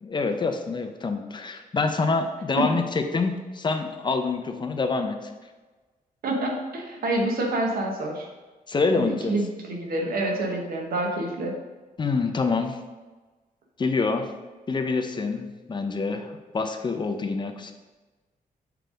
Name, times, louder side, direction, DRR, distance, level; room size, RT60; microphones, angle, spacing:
voice 1, 0.0-5.2 8.7-9.4 12.0-12.8 13.8-14.3 14.7-17.7, left 4 dB, 30° left, 6 dB, 0.5 m, -26 dB
voice 2, 6.2-8.3 8.9-11.5, right 1 dB, 80° right, 1 dB, 1.2 m, -27 dB
5.9 x 3.4 x 5.0 m, 1.2 s
wide cardioid pair, 135°, 15 cm